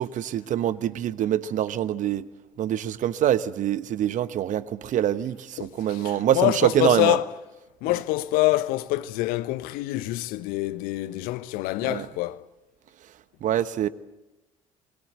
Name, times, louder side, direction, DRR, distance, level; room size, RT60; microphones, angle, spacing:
voice 1, 0.0-2.2 2.6-7.2 11.8-12.1 13.4-13.9, right 11 dB, 50° right, 1.1 m, -25 dB
voice 2, 5.6-7.3 7.8-12.4, left 17 dB, 60° left, 1.0 m, -26 dB
28.5 x 22.0 x 8.0 m
figure-of-eight pair, 55°, 17 cm